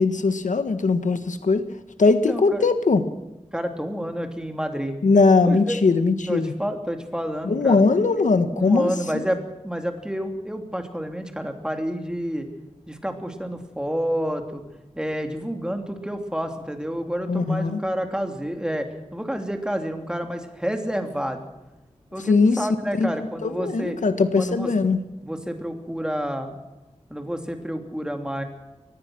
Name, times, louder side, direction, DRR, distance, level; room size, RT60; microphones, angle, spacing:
voice 1, 0.0-1.7 2.0-3.0 5.0-6.5 7.4-8.9 17.3-17.8 22.2-22.7 22.9-23.1 23.4-25.0, left 4 dB, 90° left, 10 dB, 1.5 m, -20 dB
voice 2, 2.1-2.7 3.5-5.0 5.4-5.8 6.3-7.8 8.5-12.5 12.9-14.6 15.0-21.5 22.1-24.0 24.4-24.7 25.2-26.6 27.1-28.4, equal, 5° right, 5 dB, 2.8 m, -29 dB
23.5 x 19.5 x 6.2 m, 1.0 s
wide cardioid pair, 90°, 13 cm